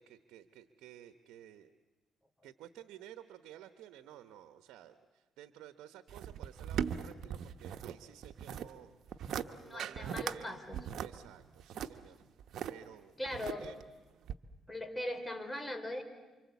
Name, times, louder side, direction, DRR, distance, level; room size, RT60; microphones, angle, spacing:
voice 1, 0.0-1.7 2.4-10.6 11.0-12.2 12.7-13.7, right 12 dB, 90° right, 10 dB, 1.0 m, -54 dB
sound 1, 6.1-7.9 8.2-8.7 9.1-9.5 9.8-10.4 10.7-12.7 13.3-13.8 14.3-14.4, right 8 dB, 70° right, 1.2 m, -38 dB
voice 2, 9.6-10.8 13.2-13.8 14.7-16.0, left 1 dB, 15° left, 7 dB, 3.4 m, -40 dB
28.0 x 25.5 x 8.3 m, 1.2 s
cardioid pair, 90°, 0 cm